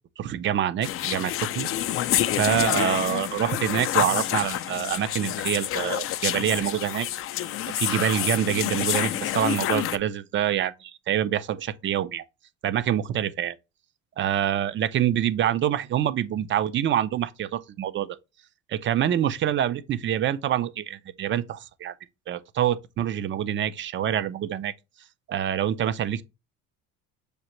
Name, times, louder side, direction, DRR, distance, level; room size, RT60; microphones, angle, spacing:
voice 1, 0.2-1.7 2.4-7.1 7.7-12.2 12.6-13.6 14.2-18.2 18.7-21.9 22.3-24.7 25.3-26.2, right 10 dB, 40° right, 0.4 m, -26 dB
Whispers 'Schizophrenic' or Ghost-like voices, 0.8-10.0, left 12 dB, 45° left, 0.4 m, -28 dB
6.5 x 2.4 x 2.9 m
supercardioid pair, 90°, 31 cm